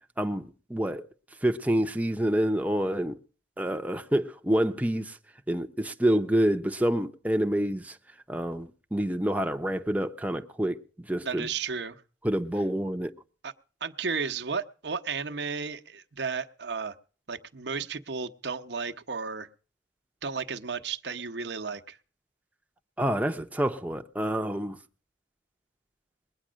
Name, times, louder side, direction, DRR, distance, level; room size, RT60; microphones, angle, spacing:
voice 1, 0.2-1.1 1.4-3.2 3.6-5.2 5.5-8.0 8.3-11.5 12.2-13.1 23.0-24.8, right 1 dB, 10° right, 0.8 m, -27 dB
voice 2, 11.2-12.0 13.4-13.5 13.8-16.9 17.3-19.5 20.2-22.0, right 5 dB, 60° right, 1.0 m, -33 dB
21.0 x 9.6 x 6.3 m
head